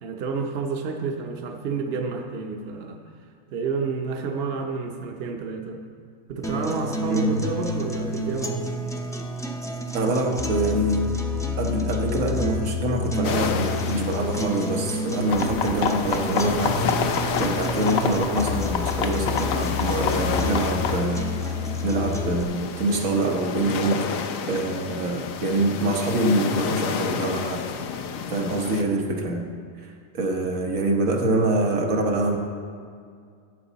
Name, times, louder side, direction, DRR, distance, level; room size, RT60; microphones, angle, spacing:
voice 1, 0.0-3.0 3.5-5.8 6.3-8.7, right 4 dB, 55° right, 3 dB, 1.0 m, -29 dB
sound 1, 6.4-22.4, left 2 dB, 5° left, 0.4 m, -29 dB
voice 2, 9.9-11.1 11.6-17.0 17.4-27.8 28.3-29.5 30.1-32.4, right 2 dB, 85° right, 2 dB, 1.5 m, -25 dB
sound 2, 13.2-28.8, left 6 dB, 80° left, 1.1 m, -32 dB
sound 3, 15.3-21.0, left 6 dB, 60° left, 0.8 m, -28 dB
12.5 x 8.3 x 4.0 m, 2.2 s
omnidirectional pair, 1.4 m